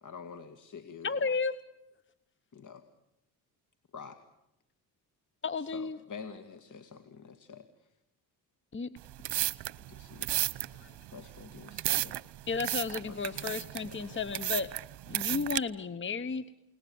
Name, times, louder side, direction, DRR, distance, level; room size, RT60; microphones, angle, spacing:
voice 1, 0.0-1.1 2.5-2.8 3.9-4.2 5.6-7.6 9.9-10.3 11.1-12.2 13.1-14.2, left 6 dB, 45° left, 8 dB, 2.2 m, -47 dB
voice 2, 1.0-1.6 5.4-6.0 8.7-9.0 12.5-14.7 15.1-16.4, left 4 dB, 25° left, 15 dB, 1.2 m, -33 dB
sound 1, 9.0-15.6, right 16 dB, 65° right, 1.0 m, -34 dB
voice 3, 10.3-11.1 11.9-12.8, left 6 dB, 60° left, 10 dB, 5.9 m, -63 dB
29.5 x 19.5 x 7.2 m, 0.88 s
supercardioid pair, 65°, 44 cm